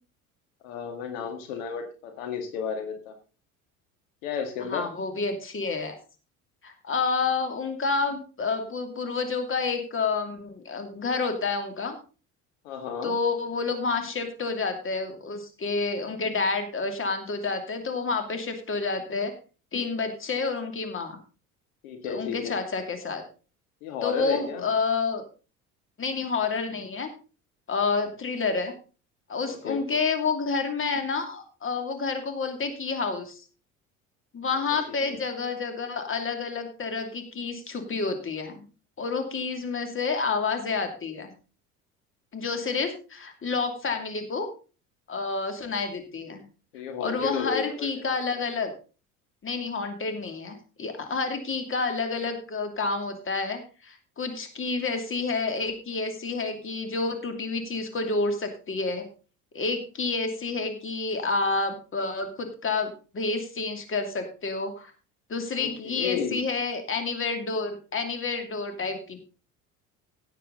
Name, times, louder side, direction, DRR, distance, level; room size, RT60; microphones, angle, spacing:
voice 1, 0.6-3.1 4.2-4.9 12.6-13.1 21.8-22.6 23.8-24.6 29.5-30.0 35.0-35.2 46.7-48.0 65.6-66.4, left 7 dB, 65° left, 5 dB, 2.0 m, -33 dB
voice 2, 4.6-6.0 6.6-12.0 13.0-19.3 19.7-21.2 22.0-23.2 24.0-25.2 26.0-27.1 27.7-28.7 29.3-33.4 34.3-38.7 39.0-41.3 42.3-44.5 45.1-46.4 47.0-48.7 49.4-59.0 59.5-64.9 65.3-69.2, left 4 dB, 30° left, 6 dB, 2.7 m, -29 dB
16.0 x 7.9 x 3.9 m, 0.36 s
figure-of-eight pair, 60°, 43 cm